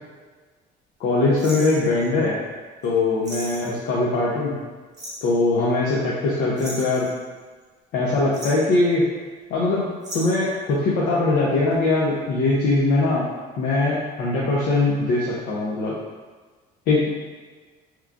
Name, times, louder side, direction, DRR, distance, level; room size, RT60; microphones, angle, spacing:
voice 1, 1.0-2.4 2.8-4.6 5.2-7.1 7.9-9.0 9.5-9.9 10.1-13.3 13.6-15.9 16.9-17.0, left 2 dB, 75° left, -6 dB, 0.7 m, -21 dB
sound 1, 1.4-2.2 2.8-2.9 3.2-3.8 4.9-5.3 6.6-7.6 8.2-8.7 10.0-10.5 11.6-11.9 12.2-12.3, equal, 20° right, 1.1 m, -36 dB
3.5 x 3.0 x 2.4 m, 1.4 s
cardioid pair, 110°, 17 cm